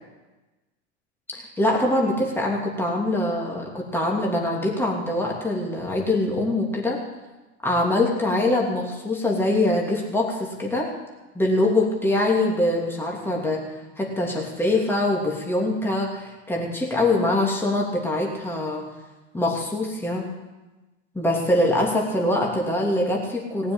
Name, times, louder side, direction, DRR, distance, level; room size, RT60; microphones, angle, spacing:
voice 1, 1.3-7.0 7.6-10.9 11.3-13.6 14.0-18.9 19.3-20.3 21.1-23.7, left 1 dB, 5° left, -2 dB, 2.9 m, -23 dB
18.5 x 7.1 x 8.8 m, 1.1 s
hypercardioid pair, 95°, 35 cm